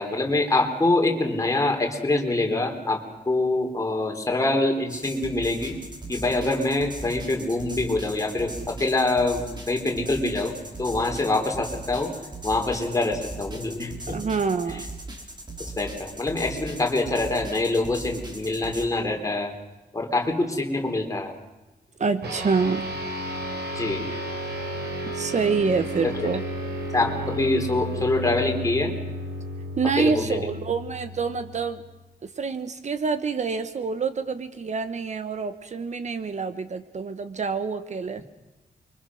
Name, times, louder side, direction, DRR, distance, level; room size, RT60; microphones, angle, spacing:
voice 1, 0.0-5.8 6.1-12.1 12.4-14.2 14.7-14.8 15.6-19.5 19.9-21.3 23.7-24.0 26.0-26.3 26.9-28.9 30.0-30.5, left 2 dB, 20° left, 2 dB, 3.7 m, -25 dB
sound 1, 4.9-18.9, right 2 dB, 25° right, 4.5 m, -39 dB
voice 2, 14.1-14.9 22.0-22.9 25.0-26.4 29.8-31.8 32.2-38.2, right 5 dB, 45° right, 11 dB, 1.1 m, -27 dB
sound 2, 22.2-31.9, equal, 90° right, 5.1 m, -33 dB
29.5 x 24.0 x 6.4 m, 1.1 s
wide cardioid pair, 155°, 17 cm